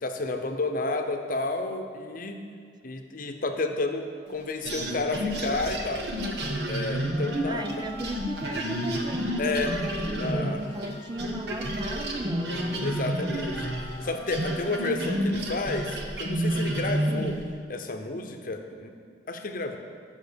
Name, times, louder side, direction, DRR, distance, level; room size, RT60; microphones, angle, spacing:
voice 1, 0.0-2.4 2.8-6.1 6.6-7.8 9.4-9.7 10.1-10.6 12.8-13.7 14.0-17.3 17.7-18.9 19.3-19.8, left 2 dB, 50° left, 5 dB, 0.8 m, -31 dB
sound 1, 4.6-10.9 11.2-17.4, right 1 dB, 65° right, 1.2 m, -30 dB
Wind instrument woodwind instrument, 7.1-15.2, left 1 dB, 20° left, 1.4 m, -43 dB
voice 2, 7.5-13.0 17.1-17.3, right 1 dB, 25° right, 7 dB, 0.4 m, -36 dB
10.5 x 5.6 x 6.8 m, 2.2 s
head